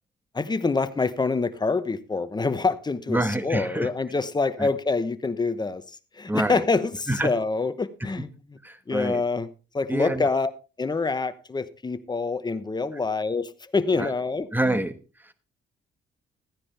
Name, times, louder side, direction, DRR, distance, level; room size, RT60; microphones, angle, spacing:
voice 1, 0.3-8.3 8.9-9.5 9.7-10.5 10.8-14.8, left 4 dB, 20° left, 12 dB, 1.0 m, -26 dB
voice 2, 3.1-3.9 4.6-4.7 6.3-6.7 7.1-7.3 8.6-9.2 9.9-10.3 14.0-14.1 14.5-15.3, right 1 dB, 10° right, 11 dB, 1.3 m, -27 dB
14.5 x 9.8 x 3.4 m, 0.32 s
cardioid pair, 90°, 20 cm